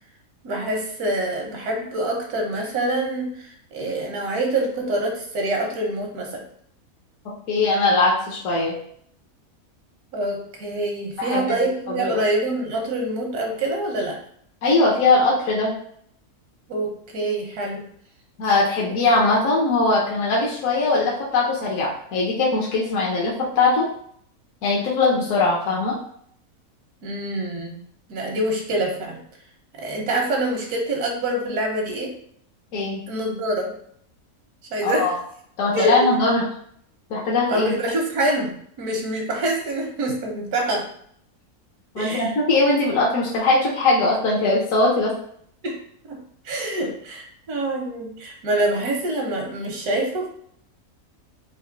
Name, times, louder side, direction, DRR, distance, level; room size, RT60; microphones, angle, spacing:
voice 1, 0.4-6.4 10.1-14.2 16.7-17.8 27.0-27.8 28.1-29.2 29.7-32.1 33.1-33.7 34.7-35.1 35.7-36.1 37.5-40.9 42.0-42.3 45.6-45.8 46.1-50.3, right 1 dB, 85° right, 1 dB, 1.5 m, -25 dB
voice 2, 7.5-8.7 11.2-11.5 12.0-12.2 14.6-15.7 18.4-23.9 24.6-26.0 32.7-33.0 34.8-35.1 35.6-36.5 37.1-37.7 41.9-45.1, left 3 dB, 65° left, -4 dB, 1.3 m, -20 dB
4.2 x 2.7 x 3.8 m, 0.65 s
omnidirectional pair, 1.6 m